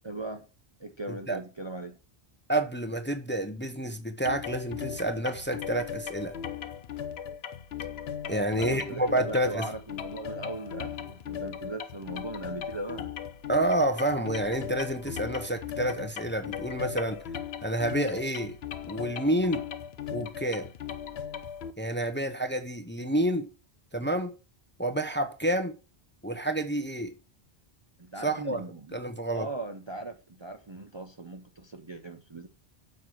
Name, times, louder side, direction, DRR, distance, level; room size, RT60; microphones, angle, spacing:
voice 1, 0.0-0.4 0.8-1.9 8.5-13.1 28.0-29.0 29.3-32.5, right 2 dB, 30° right, 0.6 m, -39 dB
voice 2, 2.5-6.3 8.3-9.6 13.5-17.2 17.6-18.6 18.9-19.7 20.1-20.7 21.8-23.5 23.9-24.3 24.8-25.8 26.2-27.1 28.2-28.6 28.9-29.5, right 1 dB, 10° left, 0.7 m, -29 dB
sound 1, 4.3-21.7, left 8 dB, 70° left, 1.0 m, -38 dB
7.4 x 5.9 x 6.2 m
omnidirectional pair, 1.1 m